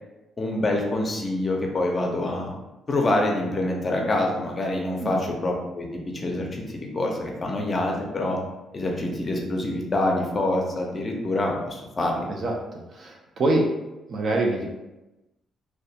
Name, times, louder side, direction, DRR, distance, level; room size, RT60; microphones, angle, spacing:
voice 1, 0.4-2.5 2.9-8.4 8.7-12.3, left 1 dB, 35° left, 1 dB, 0.5 m, -26 dB
voice 2, 12.4-13.7 14.1-14.7, right 2 dB, 50° right, 0 dB, 0.5 m, -25 dB
2.3 x 2.2 x 2.7 m, 1.0 s
cardioid pair, 90°, 0 cm